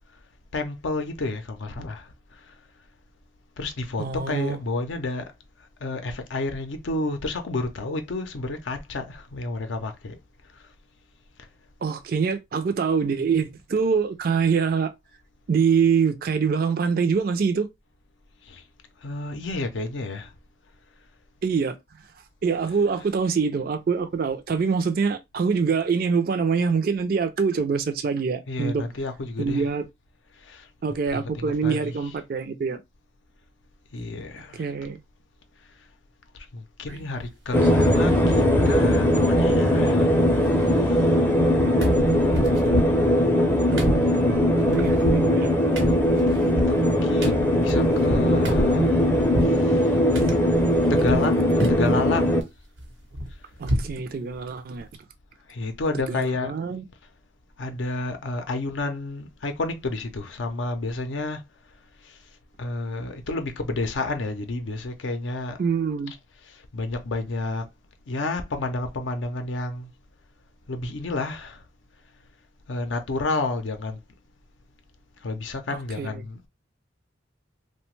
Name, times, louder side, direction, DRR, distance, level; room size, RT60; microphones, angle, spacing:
voice 1, 0.5-2.6 3.6-5.3 5.6-10.2 10.4-10.7 11.4-11.5 18.4-18.6 19.0-20.3 28.5-29.7 30.3-30.7 31.1-32.0 33.9-34.7 35.6-35.9 36.5-40.1 40.4-41.2 46.7-49.1 49.4-50.0 50.9-52.4 53.3-53.4 55.5-56.5 57.6-61.4 62.0-65.6 66.5-67.7 68.1-69.9 70.7-71.7 72.7-74.0 75.2-76.5, left 2 dB, 75° left, 0.5 m, -31 dB
voice 2, 4.0-4.6 11.8-14.9 15.5-17.7 21.4-21.8 22.4-28.8 29.4-29.8 30.8-32.8 34.6-35.0 43.7-45.5 50.1-50.3 53.6-54.9 56.0-56.8 65.6-66.1 75.7-76.2, right 5 dB, 50° right, 0.4 m, -25 dB
sound 1, 36.9-37.2 37.6-38.4 38.7-38.8 39.1-39.9 40.2-41.5 41.8-49.6 50.1-51.3 51.6-52.0 52.4-54.0 54.3-54.4 54.8-55.0, equal, 85° right, 1.0 m, -30 dB
sound 2, 37.5-52.4, equal, 10° left, 0.4 m, -20 dB
2.8 x 2.2 x 3.0 m
head